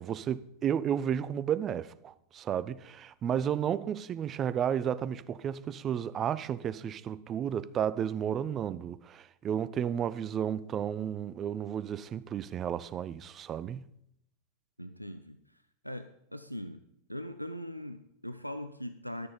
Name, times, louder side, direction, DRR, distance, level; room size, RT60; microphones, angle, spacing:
voice 1, 0.0-13.9, right 9 dB, 30° right, 0.4 m, -32 dB
voice 2, 14.8-15.4 15.8-16.8 17.1-19.3, equal, 90° left, 0.4 m, -40 dB
12.0 x 6.7 x 5.2 m
figure-of-eight pair, 90°, 0 cm